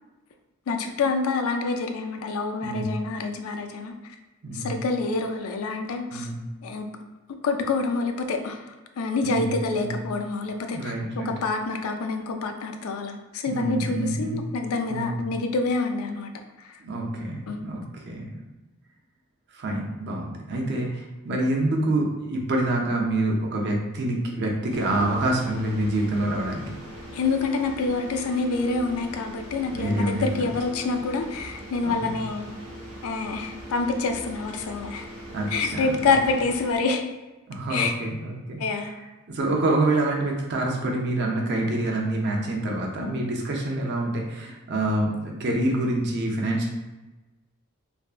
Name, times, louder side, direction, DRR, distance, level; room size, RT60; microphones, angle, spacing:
voice 1, 0.7-3.9 4.5-6.3 6.6-6.9 7.4-8.6 9.0-16.3 17.5-17.7 27.1-32.4 33.0-35.1 35.5-37.0 37.7-37.9 38.6-38.9 39.5-39.6 43.0-43.3, left 4 dB, 70° left, 5 dB, 0.4 m, -27 dB
voice 2, 4.4-4.7 6.1-6.4 9.2-9.5 9.8-10.0 10.7-11.3 13.5-14.5 14.9-15.2 16.8-18.4 19.5-26.8 29.7-30.5 31.8-32.2 35.3-35.9 37.5-39.0 39.3-46.7, right 1 dB, 50° right, 0 dB, 0.5 m, -27 dB
sound 1, 24.7-36.8, equal, 75° right, 1.0 m, -41 dB
3.4 x 2.1 x 2.4 m, 1.1 s
head